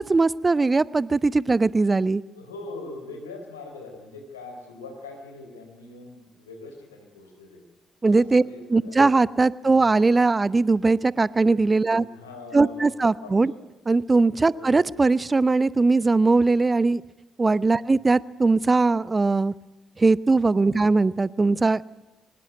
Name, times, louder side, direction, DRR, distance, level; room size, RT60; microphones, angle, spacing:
voice 1, 0.0-2.2 8.0-8.4 8.7-12.0 12.5-13.5 13.9-17.0 17.4-19.5 20.0-21.8, right 3 dB, 30° right, 20 dB, 0.7 m, -20 dB
voice 2, 2.3-7.6 8.1-9.2 9.6-9.7 11.9-13.6 14.5-14.7 17.8-18.0 20.7-20.9, left 3 dB, 85° left, 4 dB, 4.0 m, -42 dB
24.0 x 20.0 x 9.1 m, 1.1 s
figure-of-eight pair, 40°, 0 cm